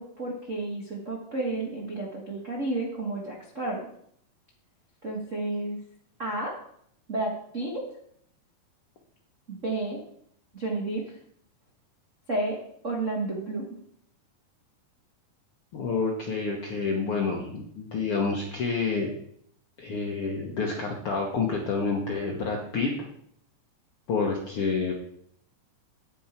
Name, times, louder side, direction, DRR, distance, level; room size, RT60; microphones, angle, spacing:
voice 1, 0.0-3.9 5.0-5.8 6.2-6.5 7.1-7.9 9.5-10.0 10.5-11.0 12.3-12.6 12.8-13.8, right 2 dB, 60° right, -2 dB, 0.7 m, -31 dB
voice 2, 15.7-19.1 19.8-23.0 24.1-24.9, left 4 dB, 70° left, -1 dB, 1.3 m, -28 dB
9.7 x 9.2 x 4.4 m, 0.68 s
omnidirectional pair, 4.2 m